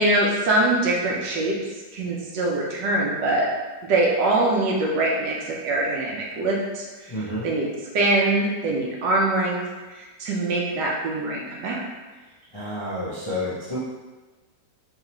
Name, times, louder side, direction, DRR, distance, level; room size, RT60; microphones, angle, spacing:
voice 1, 0.0-3.5 3.8-7.1 7.4-7.7 7.9-9.6 9.9-11.8, right 2 dB, 80° right, -2 dB, 1.4 m, -23 dB
voice 2, 7.1-7.5 12.5-13.8, left 1 dB, 35° left, -10 dB, 0.4 m, -30 dB
3.6 x 3.2 x 3.0 m, 1.2 s
omnidirectional pair, 1.9 m